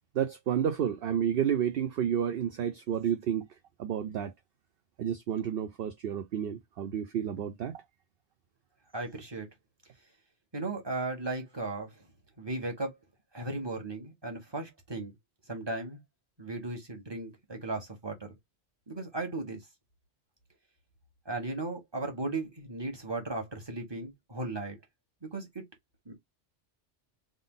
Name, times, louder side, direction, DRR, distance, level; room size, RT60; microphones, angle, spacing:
voice 1, 0.1-3.5 3.8-4.3 5.0-7.8, right 9 dB, 60° right, 0.7 m, -30 dB
voice 2, 8.9-9.5 10.5-12.1 12.4-13.0 13.3-15.1 15.5-16.0 16.4-18.3 18.9-19.6 21.2-24.8 25.2-25.6 26.0-26.1, right 2 dB, 20° right, 1.4 m, -36 dB
3.7 x 2.6 x 3.7 m
omnidirectional pair, 1.2 m